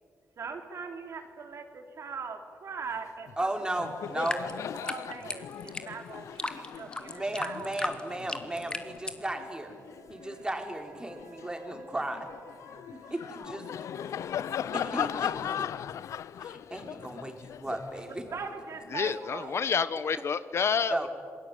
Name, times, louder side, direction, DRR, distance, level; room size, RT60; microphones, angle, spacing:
voice 1, 0.4-3.5 4.4-4.5 4.7-8.0 18.1-19.5, right 5 dB, 60° right, 5 dB, 3.6 m, -41 dB
Laughter, 3.3-3.5 3.7-10.4 10.9-19.1, left 9 dB, 75° left, 0.7 m, -38 dB
voice 2, 3.4-4.4 7.1-9.7 10.1-12.3 13.1-13.7 14.7-15.3 16.4-18.2 20.9-21.1, right 1 dB, 15° right, 4 dB, 4.5 m, -35 dB
sound 1, 4.1-9.2, left 2 dB, 15° left, 2.4 m, -36 dB
sound 2, 7.6-17.3, right 3 dB, 80° right, 4.5 m, -59 dB
voice 3, 18.9-21.1, left 6 dB, 55° left, 14 dB, 1.1 m, -28 dB
27.5 x 20.5 x 9.2 m, 2.2 s
cardioid pair, 70°, 5 cm